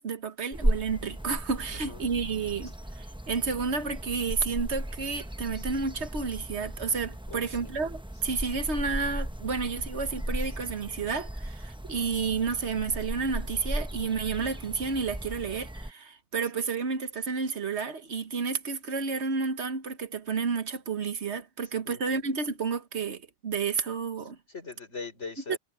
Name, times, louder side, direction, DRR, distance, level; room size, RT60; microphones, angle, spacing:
voice 1, 0.0-24.4 25.5-25.6, right 5 dB, 70° right, 1.5 m, -31 dB
sound 1, 0.5-15.9, right 1 dB, 5° right, 0.8 m, -36 dB
voice 2, 1.7-2.2 7.3-7.7 21.9-22.2 24.5-25.6, left 4 dB, 75° left, 5.3 m, -41 dB
omnidirectional pair, 1.2 m